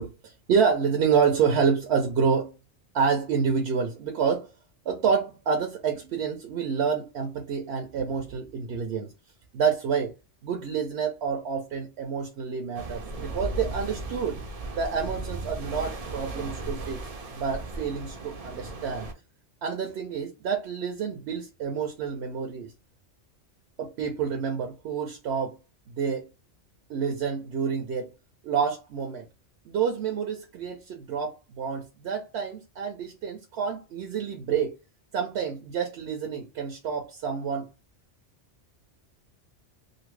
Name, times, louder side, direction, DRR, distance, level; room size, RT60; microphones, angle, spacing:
voice 1, 0.0-2.6 2.9-4.5 4.9-9.1 9.5-10.1 10.4-14.4 14.7-17.0 17.3-19.1 19.6-22.7 23.8-25.6 25.9-26.3 26.9-28.1 28.4-29.3 29.6-34.7 35.1-37.7, right 6 dB, 65° right, 0.8 m, -28 dB
sound 1, 12.7-19.1, right 2 dB, 50° right, 0.5 m, -36 dB
2.7 x 2.6 x 3.1 m
omnidirectional pair, 1.2 m